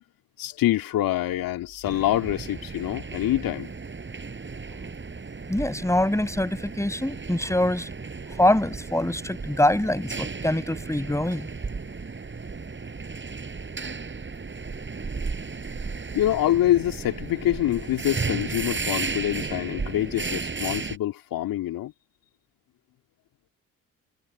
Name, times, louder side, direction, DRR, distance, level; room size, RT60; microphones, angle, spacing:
voice 1, 0.4-3.7 16.1-21.9, left 13 dB, 60° left, 2.6 m, -25 dB
sound 1, 1.8-21.0, right 4 dB, 30° right, 6.4 m, -34 dB
voice 2, 5.5-7.9 8.4-11.5, left 1 dB, 5° left, 6.4 m, -24 dB
figure-of-eight pair, 45°, 39 cm